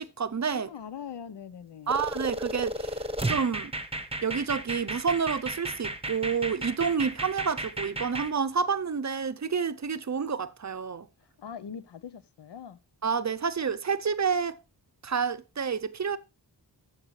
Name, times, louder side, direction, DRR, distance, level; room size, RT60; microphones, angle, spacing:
voice 1, 0.0-0.7 1.9-3.7 4.2-11.1 13.0-14.6 15.0-16.2, right 6 dB, 40° right, 0.6 m, -29 dB
voice 2, 0.5-1.9 11.2-12.8, left 7 dB, 70° left, 0.8 m, -42 dB
sound 1, 1.9-8.3, right 1 dB, 15° right, 1.1 m, -34 dB
14.5 x 6.6 x 3.2 m
wide cardioid pair, 90°, 42 cm